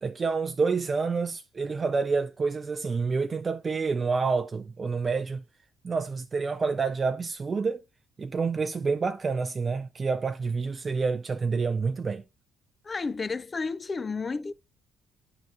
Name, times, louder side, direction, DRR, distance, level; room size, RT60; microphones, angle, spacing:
voice 1, 0.0-5.4 5.8-7.8 8.2-12.2, right 4 dB, 35° right, 0.4 m, -28 dB
voice 2, 12.8-14.5, left 4 dB, 35° left, 0.3 m, -31 dB
10.0 x 3.8 x 2.4 m
hypercardioid pair, 45°, 0 cm